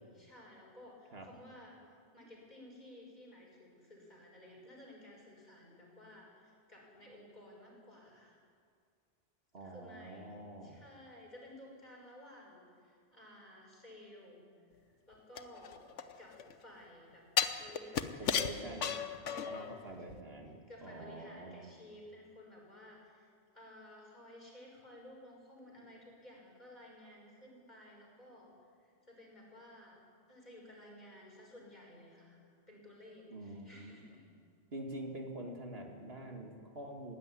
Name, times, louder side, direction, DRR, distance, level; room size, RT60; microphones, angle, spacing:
voice 1, 0.0-1.8 2.1-8.4 9.6-14.4 14.8-15.8 16.2-17.3 17.6-19.8 20.7-23.3 23.5-28.5 28.8-30.0 30.3-34.2, left 1 dB, 35° left, -2 dB, 6.5 m, -55 dB
voice 2, 9.5-10.8 18.2-18.9 19.5-21.7 33.3-34.0 34.7-37.2, right 1 dB, 55° right, 2 dB, 2.2 m, -46 dB
sound 1, 15.4-16.5 17.4-19.7 20.1-20.2, left 7 dB, 80° left, 1.3 m, -34 dB
21.0 x 16.5 x 9.9 m, 2.1 s
omnidirectional pair, 1.2 m